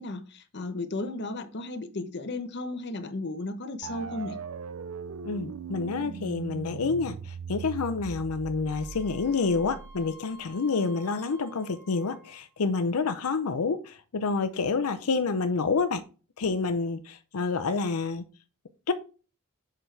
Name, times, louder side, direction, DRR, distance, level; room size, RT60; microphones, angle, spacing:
voice 1, 0.0-4.4, left 2 dB, 50° left, 0.9 m, -34 dB
sound 1, 3.8-10.5, right 6 dB, 70° right, 0.4 m, -40 dB
voice 2, 5.2-16.0 16.4-18.2 18.9-19.0, left 4 dB, 90° left, 0.6 m, -28 dB
Wind instrument woodwind instrument, 8.7-12.6, equal, 40° right, 2.2 m, -52 dB
7.0 x 5.9 x 3.3 m
head